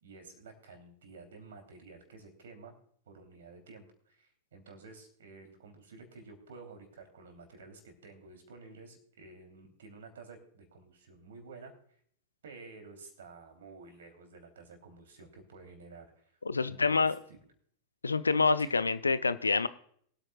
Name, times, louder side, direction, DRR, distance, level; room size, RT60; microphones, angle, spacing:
voice 1, 0.0-2.7 3.1-11.7 12.4-16.3 16.6-17.0 17.3-17.4 18.6-18.7, right 4 dB, 60° right, 5 dB, 3.0 m, -52 dB
voice 2, 16.5-17.2 18.0-19.7, left 4 dB, 80° left, 15 dB, 0.4 m, -27 dB
23.0 x 8.8 x 2.3 m, 0.63 s
figure-of-eight pair, 90°, 0 cm